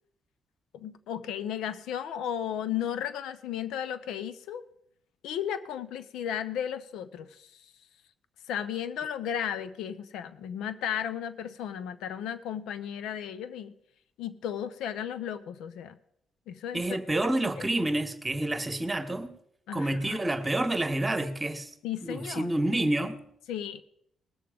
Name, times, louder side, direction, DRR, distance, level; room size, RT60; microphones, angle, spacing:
voice 1, 0.7-4.6 5.2-7.6 8.5-13.7 14.2-16.0 16.5-16.8 19.7-20.2 21.8-22.5 23.5-23.8, left 9 dB, 85° left, 0.7 m, -34 dB
voice 2, 16.7-19.3 19.7-21.7 22.0-23.2, right 1 dB, 15° right, 1.5 m, -28 dB
20.0 x 6.8 x 5.2 m
cardioid pair, 90°, 0 cm